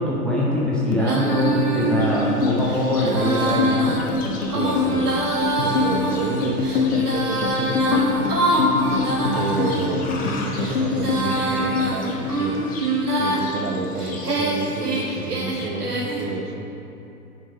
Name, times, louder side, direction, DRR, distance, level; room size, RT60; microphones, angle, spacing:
voice 1, 0.0-4.0, left 1 dB, ahead, -6 dB, 0.6 m, -22 dB
sound 1, 0.8-13.3 13.6-14.6 14.9-15.3 15.6-16.3, left 4 dB, 75° left, 1.2 m, -25 dB
Female singing, 1.0-9.9 10.5-13.5 14.0-16.3, right 2 dB, 85° right, 1.3 m, -25 dB
Livestock farm animals working animals, 2.0-15.7, left 3 dB, 20° left, 1.0 m, -39 dB
voice 2, 4.4-5.2 5.6-8.3 9.4-12.6 13.2-16.7, right 3 dB, 45° right, 4 dB, 1.0 m, -30 dB
9.8 x 4.6 x 5.0 m, 2.9 s
figure-of-eight pair, 110°, 45 cm